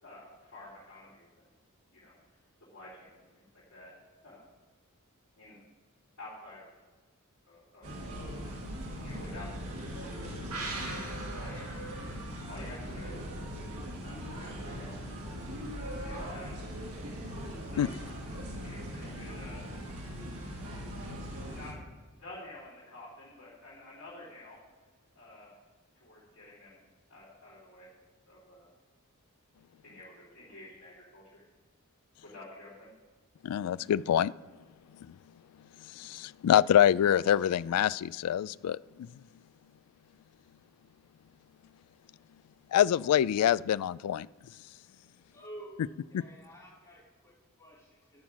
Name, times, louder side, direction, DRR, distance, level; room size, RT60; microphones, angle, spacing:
voice 1, 0.0-1.5 1.9-2.1 2.7-3.4 3.7-3.9 4.2-4.5 5.4-5.6 6.2-6.7 7.5-7.9 9.0-10.4 10.8-11.1 11.4-11.7 12.5-13.1 13.4-13.6 14.0-14.9 16.0-16.5 17.7-17.9 18.6-19.6 21.5-21.7 22.2-24.7 25.1-25.6 25.9-26.8 27.1-27.9 28.3-28.7 29.8-31.4 32.2-32.9, left 2 dB, 75° left, -9 dB, 3.9 m, -50 dB
sound 1, 7.8-21.7, equal, 70° right, 2.3 m, -40 dB
sound 2, 10.5-14.0 14.3-14.4, right 3 dB, 90° right, 2.9 m, -43 dB
voice 2, 33.4-34.3 36.0-39.1 42.7-44.3, left 10 dB, 90° left, 18 dB, 0.3 m, -25 dB
voice 3, 45.0-45.8 46.1-48.2, right 1 dB, 15° left, -10 dB, 4.2 m, -51 dB
11.5 x 6.0 x 7.8 m, 1.3 s
head